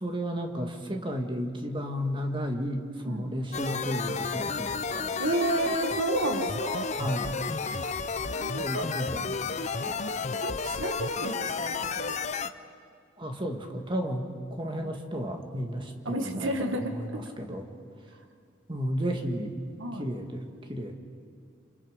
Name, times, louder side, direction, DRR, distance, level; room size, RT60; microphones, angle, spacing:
voice 1, 0.0-5.1 7.0-7.7 8.6-9.4 9.8-10.0 13.2-17.7 18.7-19.5 20.0-20.9, equal, 25° right, 3 dB, 1.9 m, -33 dB
sound 1, 3.5-12.5, left 5 dB, 35° left, 0.6 m, -32 dB
voice 2, 5.2-6.9 8.3-8.8 9.4-9.7 10.3-12.2 14.8-15.0 16.1-16.9 19.8-20.1, right 1 dB, 90° right, 5 dB, 1.8 m, -31 dB
28.0 x 27.5 x 5.2 m, 2.4 s
head